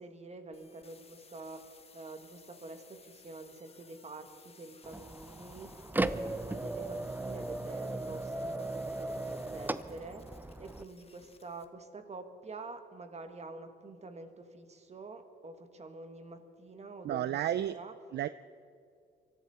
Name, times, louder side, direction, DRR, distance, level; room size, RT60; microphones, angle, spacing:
voice 1, 0.0-17.9, right 3 dB, 35° right, 7 dB, 1.7 m, -47 dB
sound 1, 0.5-11.7, left 5 dB, 30° left, 1.2 m, -59 dB
sound 2, 4.8-10.8, right 2 dB, 10° right, 0.6 m, -37 dB
voice 2, 17.0-17.8 18.1-18.3, right 11 dB, 60° right, 15 dB, 0.4 m, -31 dB
23.5 x 14.0 x 4.3 m, 2.4 s
cardioid pair, 90°, 20 cm